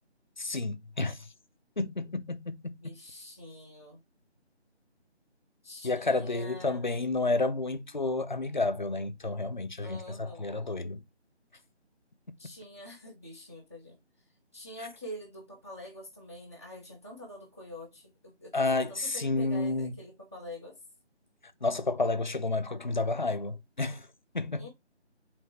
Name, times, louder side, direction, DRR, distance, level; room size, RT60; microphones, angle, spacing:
voice 1, 0.4-1.3 1.8-2.6 5.8-11.0 14.8-14.9 18.5-19.9 21.6-24.1 24.3-24.7, left 3 dB, 40° left, 0.7 m, -30 dB
voice 2, 2.8-4.0 5.6-6.9 9.8-10.5 12.4-14.0 14.5-20.7 24.6-24.7, left 1 dB, 15° right, 1.0 m, -46 dB
8.5 x 3.6 x 3.2 m
figure-of-eight pair, 170°, 35 cm